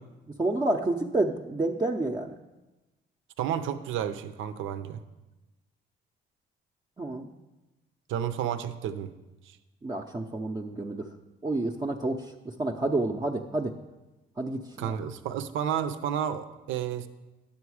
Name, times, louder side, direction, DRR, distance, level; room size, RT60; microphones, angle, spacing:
voice 1, 0.4-2.3 7.0-7.3 9.8-11.1 11.4-13.7 14.4-14.9, right 2 dB, 20° right, 0 dB, 0.6 m, -29 dB
voice 2, 3.4-5.0 8.1-9.1 14.8-17.1, right 9 dB, 80° right, 11 dB, 0.6 m, -31 dB
10.0 x 7.1 x 4.8 m, 1.1 s
cardioid pair, 90°, 20 cm